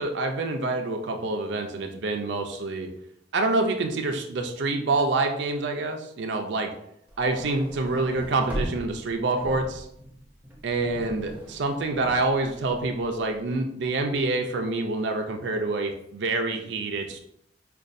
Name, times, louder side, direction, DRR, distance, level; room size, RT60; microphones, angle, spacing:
voice 1, 0.0-2.9 3.3-6.7 7.2-9.9 10.6-17.2, right 2 dB, 65° right, 4 dB, 0.5 m, -27 dB
sound 1, 7.1-13.4, equal, 10° right, 0.6 m, -39 dB
5.2 x 2.3 x 2.5 m, 0.74 s
head